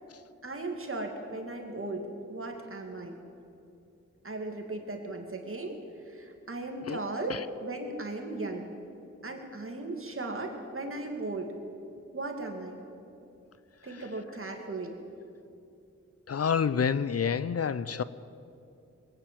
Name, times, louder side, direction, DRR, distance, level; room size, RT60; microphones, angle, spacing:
voice 1, 0.4-3.2 4.2-8.7 9.2-11.5 12.1-12.8 13.8-15.0, right 2 dB, 45° right, 2.5 m, -37 dB
voice 2, 16.3-18.0, left 6 dB, 55° left, 0.5 m, -28 dB
21.0 x 9.0 x 7.6 m
cardioid pair, 50°, 30 cm